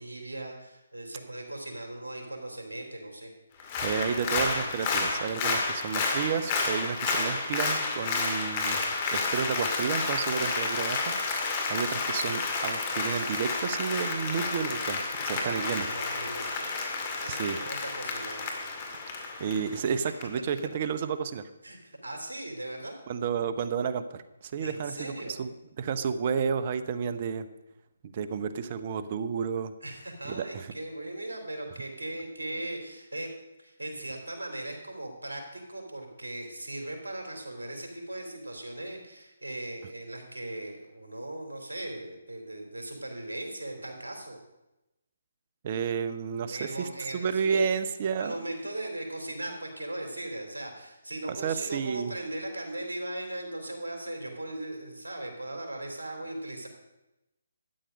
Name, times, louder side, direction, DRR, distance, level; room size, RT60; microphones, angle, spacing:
voice 1, 0.0-3.3 15.3-16.8 17.2-18.4 21.6-23.0 24.6-25.4 29.8-33.3 33.6-44.4 46.5-47.8 48.2-56.7, right 1 dB, 80° right, 3 dB, 3.4 m, -38 dB
Applause, 3.6-20.2 20.6-20.7, left 4 dB, 30° left, 2.1 m, -31 dB
voice 2, 3.8-8.8 9.1-15.9 17.2-17.6 19.4-21.4 23.1-25.5 25.8-27.5 28.0-29.7 30.2-30.7 45.6-48.3 51.3-52.1, right 6 dB, 40° right, 12 dB, 0.9 m, -31 dB
13.0 x 9.2 x 5.2 m, 0.95 s
figure-of-eight pair, 145°, 0 cm